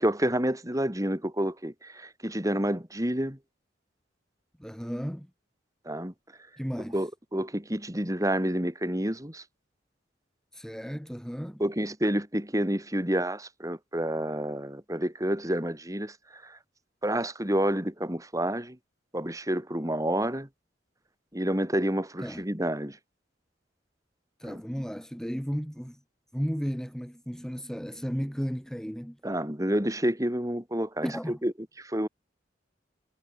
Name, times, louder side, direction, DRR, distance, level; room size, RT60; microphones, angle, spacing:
voice 1, 0.0-3.4 5.9-6.1 6.9-9.4 11.6-16.6 17.0-18.8 19.1-20.5 21.3-23.0 24.4-24.6 29.2-31.5 31.8-32.1, right 1 dB, 15° right, 3.5 m, -29 dB
voice 2, 4.6-5.3 6.6-7.0 10.5-11.6 22.2-22.4 24.4-26.0 26.3-29.2 31.0-31.4, equal, 5° left, 6.7 m, -34 dB
head